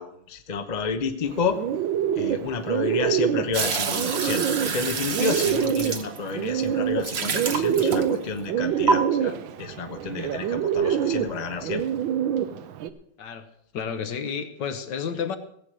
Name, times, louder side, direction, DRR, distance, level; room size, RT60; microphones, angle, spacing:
voice 1, 0.0-1.6 2.2-11.8, left 4 dB, 35° left, 7 dB, 0.6 m, -30 dB
Bird, 1.3-12.9, right 9 dB, 70° right, 1.5 m, -26 dB
sound 1, 3.5-6.5 7.0-8.3 8.9-9.0, right 5 dB, 45° right, 0.9 m, -27 dB
voice 2, 13.7-15.4, left 7 dB, 60° left, 9 dB, 1.5 m, -31 dB
16.0 x 8.4 x 6.3 m, 0.70 s
omnidirectional pair, 2.4 m